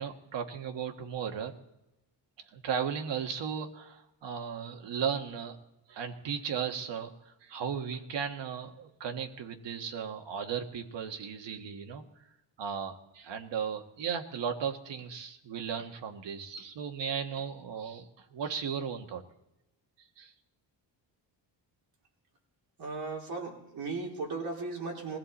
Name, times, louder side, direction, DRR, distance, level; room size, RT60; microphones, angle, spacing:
voice 1, 0.0-1.5 2.5-5.6 5.9-12.0 12.6-19.2 20.2-20.3, right 7 dB, 65° right, 4 dB, 1.7 m, -36 dB
voice 2, 22.8-25.2, right 3 dB, 50° right, -1 dB, 3.8 m, -36 dB
21.0 x 15.0 x 4.2 m, 0.92 s
cardioid pair, 160°, 45 cm